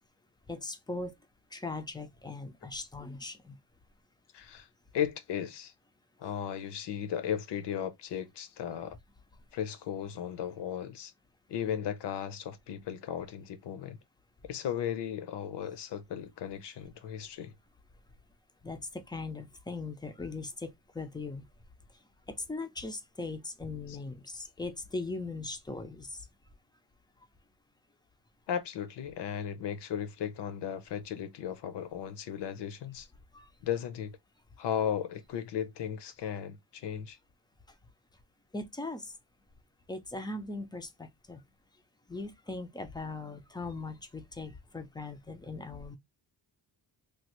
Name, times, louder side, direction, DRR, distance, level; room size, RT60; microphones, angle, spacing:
voice 1, 0.5-1.1 1.5-3.6 18.6-18.8 19.1-21.4 22.5-26.1 33.3-33.5 38.5-39.1 39.9-41.4 42.1-46.0, left 3 dB, 10° left, 0.3 m, -39 dB
voice 2, 4.3-4.7 4.9-5.7 6.2-9.0 9.5-11.1 11.5-14.0 14.4-17.5 28.5-33.1 33.6-34.1 34.6-37.2, left 9 dB, 80° left, 0.7 m, -36 dB
3.2 x 2.3 x 2.9 m
wide cardioid pair, 160°, 41 cm